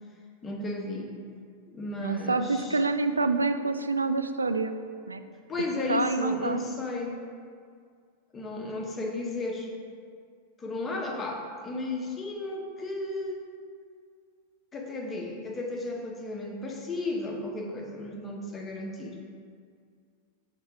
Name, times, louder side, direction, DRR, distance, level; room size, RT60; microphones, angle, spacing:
voice 1, 0.4-1.1 1.7-2.8 5.5-7.2 8.3-9.7 10.6-13.4 14.7-19.2, left 2 dB, 20° left, 1 dB, 0.9 m, -34 dB
voice 2, 2.0-4.8 5.1-5.2 5.9-6.6, right 3 dB, 80° right, 9 dB, 0.3 m, -27 dB
5.5 x 3.7 x 5.8 m, 2.1 s
figure-of-eight pair, 90°, 0 cm